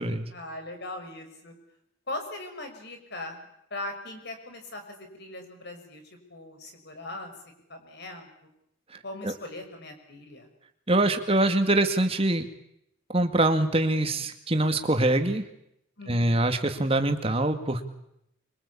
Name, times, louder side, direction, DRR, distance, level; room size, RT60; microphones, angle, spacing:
voice 1, 0.3-1.5 2.1-3.4 3.7-6.0 6.3-7.3 7.7-8.3 9.0-10.5 16.0-16.4, left 2 dB, 50° left, 6 dB, 6.1 m, -39 dB
voice 2, 10.9-12.5 13.1-15.4 16.1-17.8, right 2 dB, 25° right, 7 dB, 2.3 m, -24 dB
25.5 x 24.5 x 8.6 m, 0.78 s
head